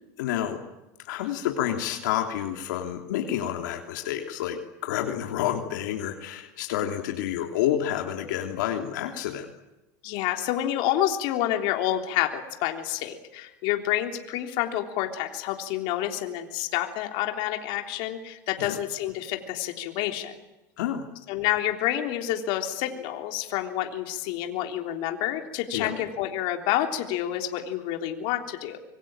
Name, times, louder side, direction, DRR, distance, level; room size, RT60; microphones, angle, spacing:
voice 1, 0.2-0.6 1.1-9.5 18.6-18.8 20.8-21.0 25.7-26.0, left 11 dB, 80° left, 3 dB, 3.2 m, -29 dB
voice 2, 10.0-20.4 21.3-28.8, left 12 dB, 60° left, 4 dB, 3.5 m, -28 dB
26.0 x 23.0 x 9.0 m, 1.0 s
supercardioid pair, 115°, 10 cm